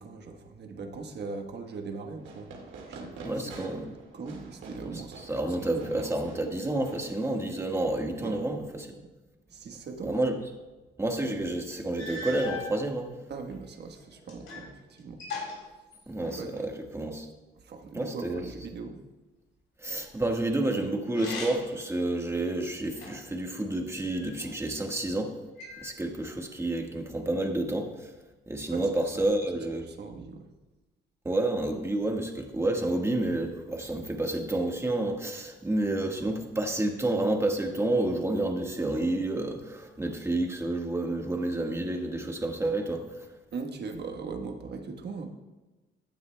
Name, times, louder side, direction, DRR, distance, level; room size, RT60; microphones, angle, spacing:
voice 1, 0.0-2.5 2.9-3.7 4.1-6.1 8.2-8.6 9.0-9.1 9.5-10.2 13.3-15.2 16.4-16.6 17.6-19.0 28.7-29.3 29.5-30.5 36.3-36.4 43.5-45.3, right 4 dB, 60° right, 4 dB, 1.3 m, -40 dB
Fireworks, 2.2-7.7, right 3 dB, 75° right, 2.0 m, -47 dB
voice 2, 3.2-3.9 5.3-8.6 10.0-10.3 11.0-13.1 16.1-17.3 17.9-18.4 19.8-25.3 25.8-28.1 28.5-29.8 31.2-43.2, right 2 dB, 15° right, 2 dB, 1.5 m, -29 dB
sound 1, 11.4-11.5 12.0-12.7 13.5-14.7 15.0-16.5 21.1-21.8 22.4-23.4 24.1-24.9 25.6-26.3, left 3 dB, 85° left, 3.5 m, -40 dB
15.0 x 9.5 x 2.2 m, 1.2 s
cardioid pair, 90°, 20 cm